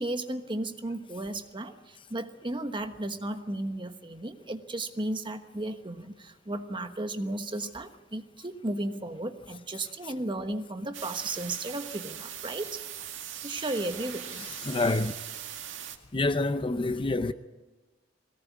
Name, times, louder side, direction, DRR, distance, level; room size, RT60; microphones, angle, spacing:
voice 1, 0.0-12.8 13.4-14.5, right 1 dB, 25° right, 1.3 m, -34 dB
sound 1, 10.9-16.0, right 9 dB, 75° right, 2.1 m, -40 dB
voice 2, 14.7-15.1 16.1-17.3, left 2 dB, 25° left, 0.6 m, -27 dB
21.5 x 18.0 x 8.5 m
head